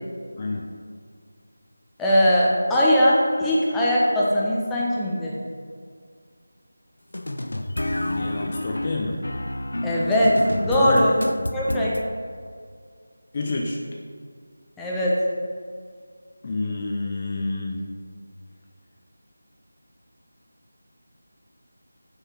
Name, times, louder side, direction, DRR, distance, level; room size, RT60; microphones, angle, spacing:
voice 1, 2.0-5.3 9.8-11.1 11.5-12.0 14.8-15.2, equal, 5° left, -7 dB, 0.9 m, -20 dB
sound 1, 7.1-12.0, left 1 dB, 70° left, 0.6 m, -29 dB
voice 2, 8.0-9.2 10.8-11.0 11.5-12.0 13.3-13.8 16.4-17.8, left 3 dB, 30° left, -1 dB, 0.7 m, -28 dB
6.5 x 5.6 x 6.1 m, 2.1 s
figure-of-eight pair, 165°, 0 cm